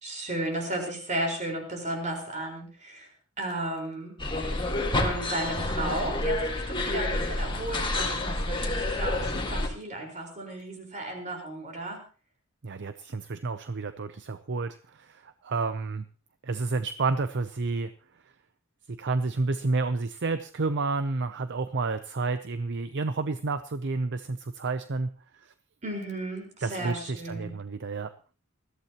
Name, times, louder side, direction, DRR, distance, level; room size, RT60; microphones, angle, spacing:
voice 1, 0.0-3.1 3.4-4.1 4.9-12.0 25.8-27.5, right 1 dB, 35° right, 2 dB, 4.8 m, -34 dB
sound 1, 4.2-9.7, left 2 dB, 25° left, 1.9 m, -29 dB
voice 2, 12.6-14.8 15.2-16.0 16.4-17.9 18.9-25.1 26.6-28.1, right 3 dB, 55° right, 11 dB, 0.7 m, -30 dB
20.5 x 14.5 x 3.0 m, 0.37 s
head